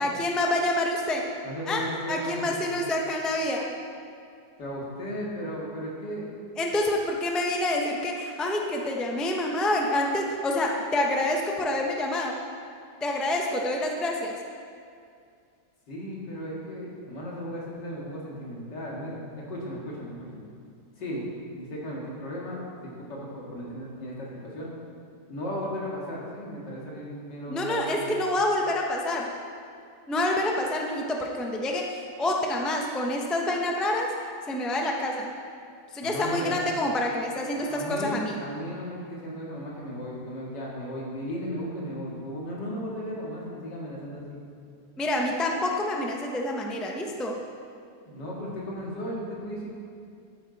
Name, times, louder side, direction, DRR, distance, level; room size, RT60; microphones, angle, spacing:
voice 1, 0.0-1.3 1.7-3.7 6.6-12.4 13.0-14.3 27.5-29.3 30.1-34.1 34.5-35.3 35.9-38.4 45.0-47.3, left 1 dB, ahead, 0 dB, 0.4 m, -27 dB
voice 2, 1.4-2.7 4.6-6.3 15.9-20.4 21.0-24.7 25.3-28.0 36.0-36.6 37.5-44.4 48.1-49.7, equal, 85° left, -4 dB, 2.7 m, -35 dB
11.5 x 9.1 x 4.1 m, 2.3 s
omnidirectional pair, 1.8 m